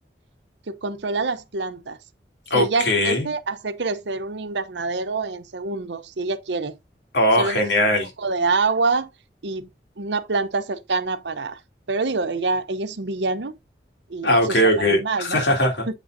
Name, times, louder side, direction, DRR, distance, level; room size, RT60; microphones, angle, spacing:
voice 1, 0.7-2.0 2.5-6.8 7.4-7.7 8.2-9.1 9.4-9.7 10.0-11.6 11.9-13.5 14.1-15.4, right 3 dB, 85° right, 0.8 m, -26 dB
voice 2, 2.5-3.3 7.1-8.1 14.2-16.0, left 1 dB, 85° left, 3.3 m, -20 dB
8.5 x 6.1 x 2.6 m
head